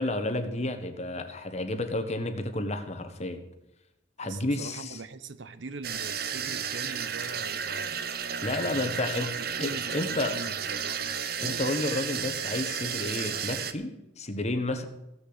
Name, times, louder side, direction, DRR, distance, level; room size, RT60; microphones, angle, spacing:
voice 1, 0.0-3.4 4.2-5.0 8.4-9.3 9.6-10.4 11.4-14.8, left 2 dB, 35° left, 1.3 m, -31 dB
voice 2, 4.2-11.8, right 4 dB, 75° right, 0.8 m, -43 dB
sound 1, 5.8-13.7, right 7 dB, 55° right, 0.9 m, -33 dB
15.5 x 6.9 x 7.9 m
head